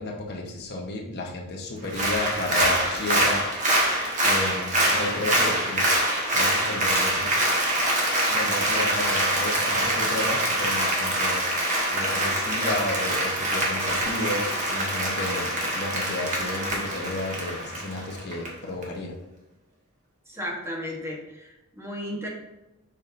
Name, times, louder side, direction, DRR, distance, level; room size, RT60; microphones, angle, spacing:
voice 1, 0.0-3.4 3.7-3.8 4.2-6.0 6.3-7.3 8.3-19.1, left 2 dB, 50° left, -1 dB, 1.2 m, -32 dB
Applause, 1.8-18.5 18.8-18.9, right 1 dB, 35° right, 1.4 m, -25 dB
voice 2, 20.3-22.3, equal, 10° right, -2 dB, 1.2 m, -34 dB
7.0 x 5.6 x 2.6 m, 0.96 s
head